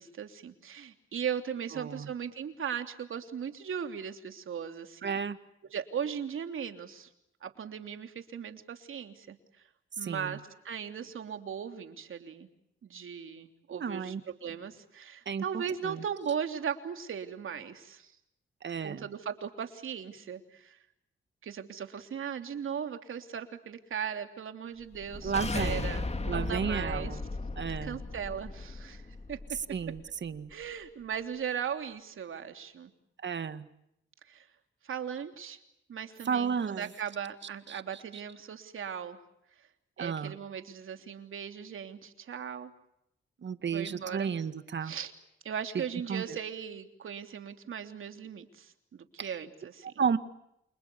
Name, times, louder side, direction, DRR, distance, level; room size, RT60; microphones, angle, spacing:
voice 1, 0.0-5.2 5.6-7.1 7.4-9.4 10.0-12.5 12.8-14.1 14.4-18.1 18.8-20.8 21.4-27.2 27.8-29.6 30.5-32.9 34.3-34.5 34.8-35.6 35.9-39.2 40.0-42.7 43.6-44.3 44.8-45.1 45.4-49.9, right 7 dB, 75° right, 7 dB, 3.3 m, -38 dB
voice 2, 1.7-2.1 5.0-5.4 10.0-10.4 13.7-14.2 15.3-16.0 18.6-19.1 25.2-25.9 26.3-27.2 27.6-28.0 29.7-30.5 33.2-33.6 36.2-36.9 37.7-37.8 40.0-40.4 43.4-44.9 45.7-45.8 46.1-46.4 49.2-49.4 50.0-50.2, right 6 dB, 60° right, 11 dB, 2.0 m, -33 dB
sound 1, 24.9-30.0, left 3 dB, 30° left, 2.5 m, -36 dB
29.5 x 28.0 x 7.0 m, 0.80 s
cardioid pair, 80°, 21 cm